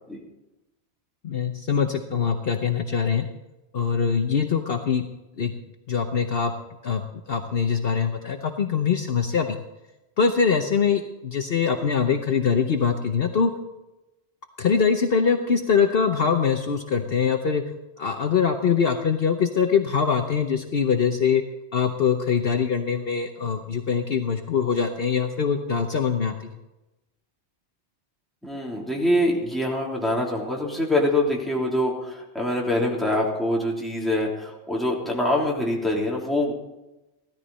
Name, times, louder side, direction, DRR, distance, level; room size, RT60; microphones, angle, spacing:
voice 1, 1.2-3.2 3.7-5.0 5.4-5.5 5.9-6.5 6.8-7.0 7.3-9.6 10.2-13.5 14.6-17.6 18.0-21.4 21.7-26.3, left 6 dB, 60° left, 5 dB, 1.0 m, -23 dB
voice 2, 28.4-36.5, left 1 dB, ahead, -4 dB, 3.3 m, -24 dB
16.5 x 13.5 x 4.2 m, 0.99 s
omnidirectional pair, 1.1 m